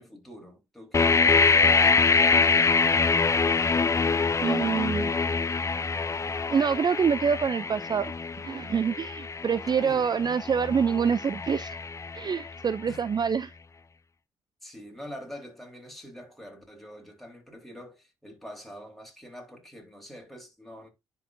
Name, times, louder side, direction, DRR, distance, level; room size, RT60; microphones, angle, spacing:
voice 1, 0.0-1.9 9.8-10.1 12.9-13.0 14.6-20.9, equal, ahead, 3.8 m, -45 dB
sound 1, 0.9-12.7, left 4 dB, 25° left, 0.5 m, -25 dB
voice 2, 4.4-5.1 6.5-8.1 8.4-11.8 12.1-13.5, right 6 dB, 35° right, 0.4 m, -26 dB
10.5 x 4.5 x 2.6 m
hypercardioid pair, 50°, 12 cm